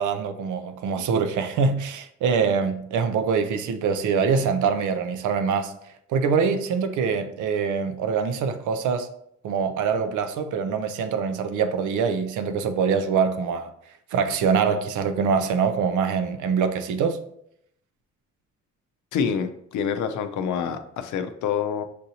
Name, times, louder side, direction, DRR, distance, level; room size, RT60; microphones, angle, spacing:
voice 1, 0.0-5.7 6.1-9.1 9.4-13.7 14.1-17.2, right 6 dB, 75° right, 0.6 m, -24 dB
voice 2, 19.1-21.8, left 7 dB, 75° left, 0.6 m, -27 dB
6.5 x 2.7 x 2.8 m
cardioid pair, 90°, 30 cm